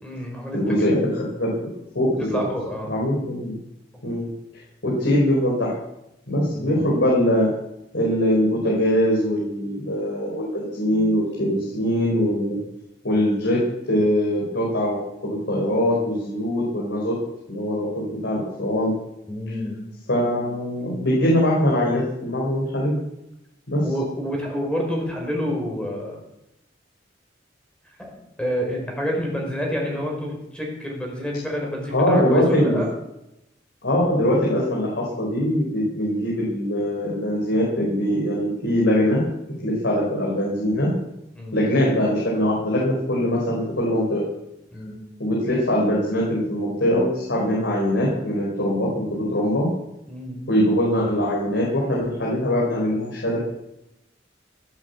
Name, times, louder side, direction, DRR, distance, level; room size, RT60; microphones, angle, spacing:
voice 1, 0.0-1.0 2.3-2.9 6.5-6.9 19.3-19.8 23.8-26.2 28.0-28.1 28.4-32.9 41.3-41.6 44.7-45.0 50.1-50.4, equal, 5° left, 0 dB, 4.9 m, -28 dB
voice 2, 0.5-1.5 1.9-2.4 2.9-3.6 4.0-4.3 4.8-5.7 6.3-7.5 7.9-12.6 13.0-13.6 13.9-17.1 17.5-18.9 20.1-23.0 23.7-23.8 31.9-32.8 33.8-39.2 39.6-40.9 41.5-44.3 45.2-49.7 50.5-53.4, equal, 80° left, -4 dB, 4.9 m, -22 dB
17.0 x 9.1 x 8.5 m, 0.87 s
head